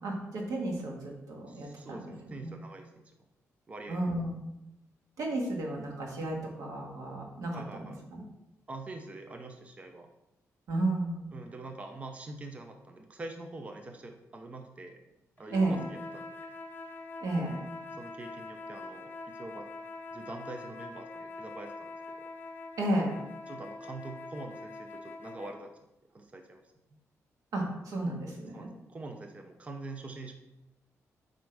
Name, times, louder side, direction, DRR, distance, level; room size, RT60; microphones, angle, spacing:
voice 1, 0.0-2.1 2.4-2.5 3.9-4.4 5.2-8.2 10.7-11.2 15.5-15.9 17.2-17.6 22.8-23.2 27.5-28.7, right 1 dB, 85° right, 0 dB, 1.6 m, -33 dB
voice 2, 1.5-3.1 3.7-4.1 7.5-8.0 8.7-10.1 11.3-15.0 15.4-16.3 18.0-19.7 20.1-21.9 23.5-25.7 26.1-26.6 28.5-30.3, right 2 dB, 25° right, 5 dB, 0.6 m, -44 dB
sound 1, 15.4-25.6, left 3 dB, 35° left, 0.5 m, -44 dB
7.8 x 5.2 x 3.4 m, 0.93 s
wide cardioid pair, 160°, 6 cm